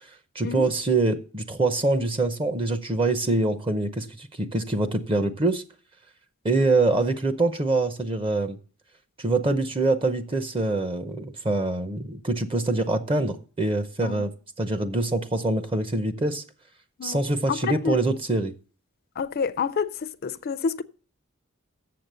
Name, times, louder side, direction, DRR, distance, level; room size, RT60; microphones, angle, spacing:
voice 1, 0.3-5.6 6.4-8.6 9.2-14.3 14.6-16.4 17.0-18.5, right 2 dB, 25° right, 0.6 m, -24 dB
voice 2, 17.5-17.9 19.2-19.9 20.2-20.8, left 5 dB, 50° left, 0.4 m, -28 dB
7.7 x 7.2 x 6.7 m
head